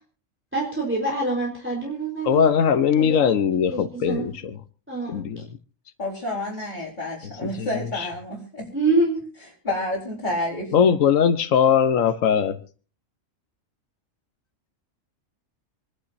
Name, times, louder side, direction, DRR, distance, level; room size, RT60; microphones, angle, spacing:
voice 1, 0.5-3.2 3.7-4.3 4.9-5.2 8.7-9.2, right 2 dB, 10° right, 4.1 m, -26 dB
voice 2, 2.2-4.6 5.1-5.4 7.4-7.7 7.9-8.1 10.7-12.6, left 7 dB, 80° left, 1.3 m, -20 dB
voice 3, 6.0-8.7 9.4-11.0, left 1 dB, 35° left, 4.7 m, -30 dB
27.0 x 11.5 x 2.6 m
omnidirectional pair, 1.3 m